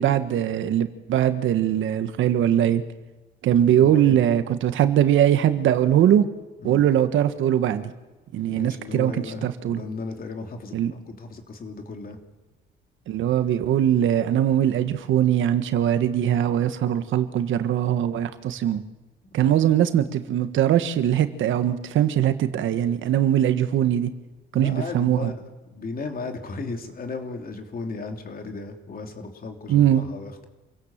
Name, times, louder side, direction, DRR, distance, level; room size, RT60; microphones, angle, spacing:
voice 1, 0.0-2.8 3.4-6.3 6.6-7.9 8.3-9.1 9.4-9.8 10.7-10.9 13.1-18.8 19.3-24.1 24.5-25.3 29.7-30.0, right 10 dB, 80° right, 10 dB, 1.5 m, -21 dB
voice 2, 3.6-4.2 6.6-6.9 8.5-12.2 19.2-19.7 24.5-25.4 25.6-30.5, left 3 dB, 45° left, 4 dB, 3.5 m, -35 dB
27.5 x 16.5 x 7.5 m, 1.1 s
cardioid pair, 90°, 20 cm